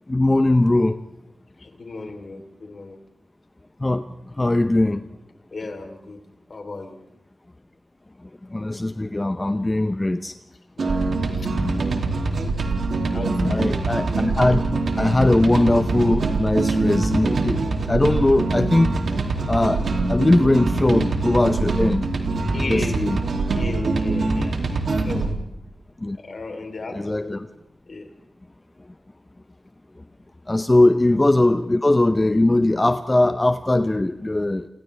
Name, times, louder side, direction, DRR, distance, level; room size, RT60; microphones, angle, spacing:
voice 1, 0.1-1.0 3.8-5.0 8.5-10.3 13.5-14.7 15.0-18.9 19.5-19.8 20.1-22.0 22.7-23.2 26.0-26.2 27.0-27.4 30.5-34.7, left 2 dB, 20° left, 9 dB, 0.7 m, -20 dB
voice 2, 1.6-3.0 5.5-6.2 6.5-7.0 10.8-11.5 12.5-12.7 13.1-13.6 22.5-23.0 23.5-24.6 24.9-25.4 26.1-27.4 27.9-28.1, left 3 dB, 55° left, 4 dB, 3.4 m, -35 dB
sound 1, 10.8-25.3, right 3 dB, 75° right, 2.6 m, -23 dB
29.0 x 29.0 x 3.4 m, 0.84 s
wide cardioid pair, 110°, 0 cm